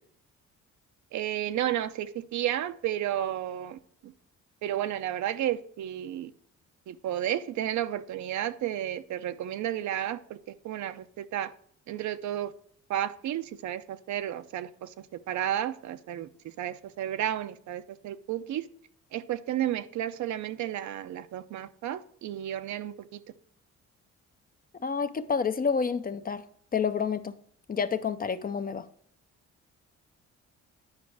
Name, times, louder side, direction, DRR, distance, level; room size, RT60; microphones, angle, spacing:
voice 1, 1.1-4.1 4.6-6.3 6.9-10.4 10.6-11.5 11.9-12.5 12.9-14.9 15.3-18.7 19.1-23.2, right 11 dB, 70° right, 0.6 m, -32 dB
voice 2, 24.8-26.4 26.7-27.4 27.7-28.9, left 6 dB, 30° left, 0.5 m, -29 dB
9.6 x 5.2 x 4.6 m
cardioid pair, 90°, 30 cm